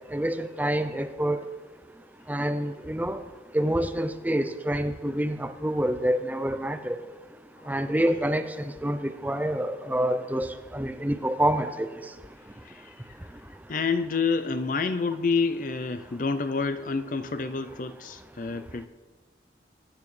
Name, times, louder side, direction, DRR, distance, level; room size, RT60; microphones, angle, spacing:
voice 1, 0.1-1.4 2.3-3.2 3.5-7.0 7.7-8.5 8.8-10.5 10.7-11.9, right 1 dB, 10° right, 8 dB, 0.5 m, -27 dB
voice 2, 12.6-13.0 13.7-18.9, left 4 dB, 45° left, 11 dB, 0.5 m, -28 dB
20.5 x 9.2 x 3.3 m, 1.4 s
head